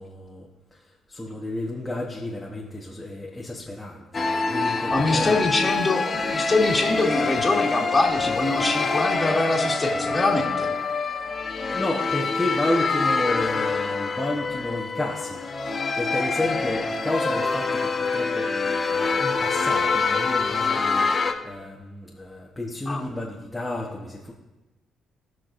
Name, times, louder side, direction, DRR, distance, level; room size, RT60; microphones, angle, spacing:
voice 1, 0.0-5.4 11.2-11.3 11.7-15.4 16.0-24.3, left 1 dB, 5° left, -3 dB, 1.1 m, -31 dB
sound 1, 4.1-21.3, left 4 dB, 35° left, 0.9 m, -25 dB
voice 2, 4.9-10.7 22.9-23.0, left 2 dB, 20° left, -2 dB, 1.8 m, -24 dB
18.0 x 6.0 x 2.6 m, 1.1 s
cardioid pair, 90°, 0 cm